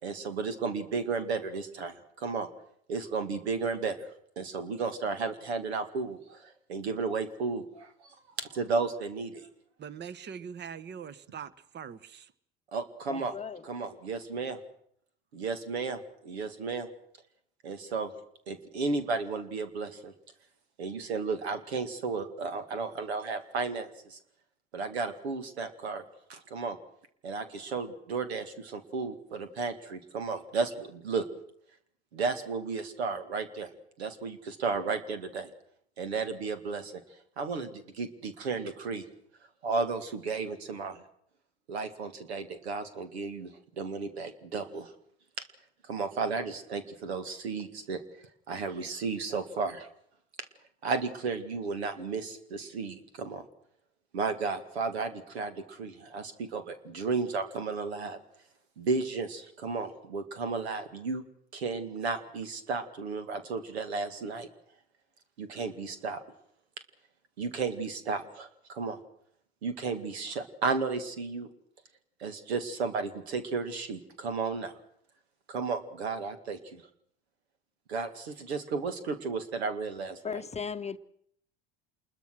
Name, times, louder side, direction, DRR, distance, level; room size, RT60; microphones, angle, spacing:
voice 1, 0.0-2.5 2.9-4.1 4.4-7.9 8.4-9.5 12.7-13.3 13.6-14.6 15.3-16.9 17.6-18.1 18.5-20.1 20.8-24.2 24.7-26.0 26.3-26.8 27.2-31.3 32.1-33.7 34.0-35.5 36.0-36.9 37.4-39.1 39.6-41.0 41.7-44.9 45.4-45.5 45.8-48.0 48.5-49.9 50.8-53.4 54.1-58.2 58.8-61.2 61.5-64.5 65.4-66.2 67.4-69.0 69.6-71.5 72.2-74.7 75.5-76.8 77.9-80.4, right 4 dB, 85° right, 2.2 m, -33 dB
voice 2, 9.8-12.3, right 7 dB, 35° right, 1.2 m, -42 dB
voice 3, 13.1-13.7 80.2-81.0, left 6 dB, 20° left, 0.9 m, -37 dB
27.5 x 21.5 x 6.3 m
hypercardioid pair, 70°, 31 cm